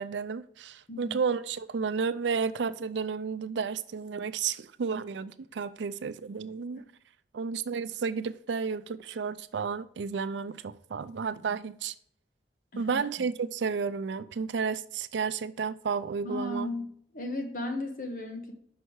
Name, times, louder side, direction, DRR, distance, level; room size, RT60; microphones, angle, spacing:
voice 1, 0.0-6.8 7.3-11.9 12.8-16.7, right 5 dB, 90° right, 0.4 m, -32 dB
voice 2, 0.9-1.2 12.7-13.0 16.2-16.9 17.1-18.5, left 1 dB, 50° left, 1.2 m, -34 dB
6.1 x 5.5 x 4.6 m
head